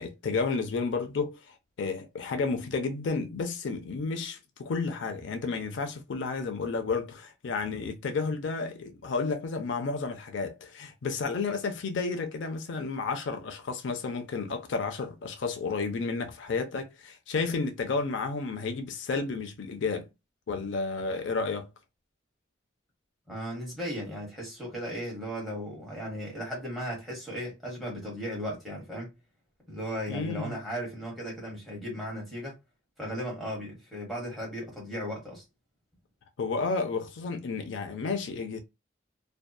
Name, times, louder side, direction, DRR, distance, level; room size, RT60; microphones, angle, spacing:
voice 1, 0.0-20.1 20.5-21.7 30.1-30.6 36.4-38.6, left 4 dB, 75° left, 0.5 m, -31 dB
voice 2, 23.3-29.1 29.7-32.6 33.0-35.4, equal, ahead, 1.1 m, -36 dB
2.6 x 2.2 x 2.2 m
head